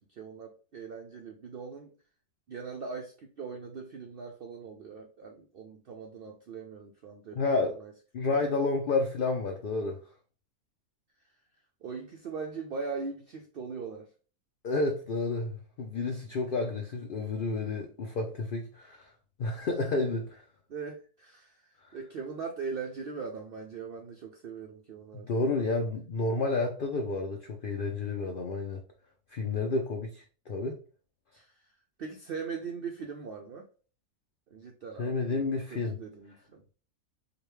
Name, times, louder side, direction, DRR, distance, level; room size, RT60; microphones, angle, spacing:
voice 1, 0.0-1.9 2.5-7.9 8.2-8.5 11.2-11.3 11.8-14.1 16.2-16.5 20.7-25.5 31.3-33.7 34.5-36.7, right 5 dB, 75° right, 0.5 m, -41 dB
voice 2, 7.4-7.7 8.1-10.0 14.6-19.1 19.4-20.4 25.3-28.8 29.3-30.8 35.0-36.0, left 3 dB, 75° left, 0.4 m, -30 dB
5.0 x 2.3 x 3.1 m
omnidirectional pair, 1.5 m